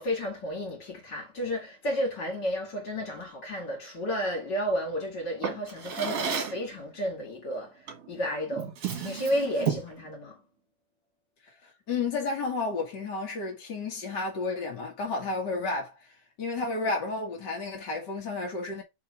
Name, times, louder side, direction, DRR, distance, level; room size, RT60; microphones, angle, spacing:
voice 1, 0.0-8.7 9.0-10.4, equal, 35° left, 2.1 m, -32 dB
Drawer open or close, 5.4-6.7 7.9-8.1 8.5-10.0, right 7 dB, 50° right, 1.9 m, -32 dB
voice 2, 11.4-18.8, left 3 dB, 65° left, 1.0 m, -32 dB
5.9 x 4.8 x 4.9 m
omnidirectional pair, 5.1 m